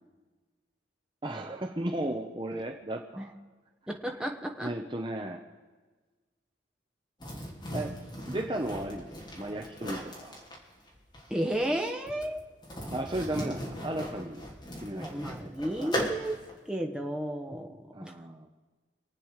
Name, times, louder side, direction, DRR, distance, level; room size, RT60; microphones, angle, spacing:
voice 1, 1.2-3.3 4.6-5.4 7.7-7.9 8.3-10.4 12.9-14.5 14.8-15.5 15.8-15.9 17.9-18.5, right 1 dB, 25° right, 2 dB, 0.9 m, -35 dB
voice 2, 3.9-4.7 11.3-12.5 14.9-16.4 16.6-18.1, right 1 dB, 5° right, 2 dB, 1.3 m, -33 dB
sound 1, 7.2-16.5, equal, 25° left, 3.1 m, -38 dB
26.5 x 8.9 x 4.9 m, 1.3 s
head